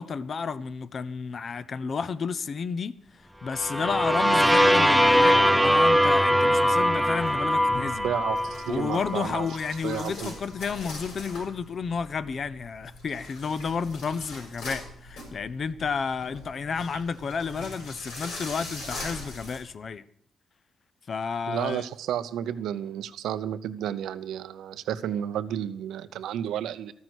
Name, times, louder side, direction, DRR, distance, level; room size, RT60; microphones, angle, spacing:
voice 1, 0.0-3.0 3.4-8.1 8.7-20.0 21.1-21.8, left 5 dB, 45° left, 0.6 m, -31 dB
sound 1, 3.5-9.4, equal, ahead, 0.5 m, -21 dB
sound 2, 7.0-19.6, left 2 dB, 85° left, 6.3 m, -42 dB
voice 2, 8.0-9.5 9.8-10.4 21.5-26.9, right 10 dB, 90° right, 0.7 m, -32 dB
13.0 x 9.4 x 6.2 m
cardioid pair, 120°, 0 cm